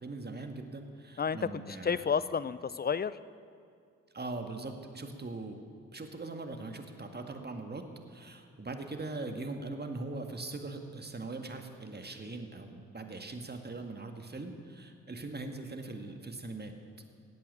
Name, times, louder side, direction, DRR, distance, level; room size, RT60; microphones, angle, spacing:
voice 1, 0.0-2.0 4.1-5.6 5.9-16.7, right 3 dB, 30° right, 5 dB, 2.0 m, -41 dB
voice 2, 1.2-3.2, left 6 dB, 25° left, 16 dB, 0.6 m, -31 dB
16.0 x 8.5 x 9.6 m, 2.3 s
supercardioid pair, 50°, 35 cm